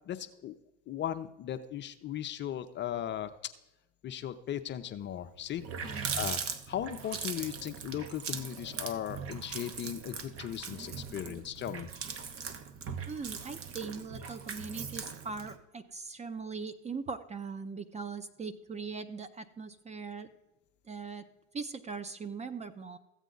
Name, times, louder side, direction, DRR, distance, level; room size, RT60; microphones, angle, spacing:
voice 1, 0.1-0.5 0.9-3.3 4.0-6.4 6.7-11.9, left 10 dB, 30° left, 9 dB, 0.6 m, -37 dB
Water tap faucet, 5.1-5.2 5.5-15.6, right 6 dB, 35° right, 1.1 m, -40 dB
voice 2, 13.1-20.3 20.9-21.2 21.5-23.0, right 5 dB, 20° right, 11 dB, 0.6 m, -40 dB
14.5 x 8.0 x 3.9 m, 0.96 s
supercardioid pair, 110°, 38 cm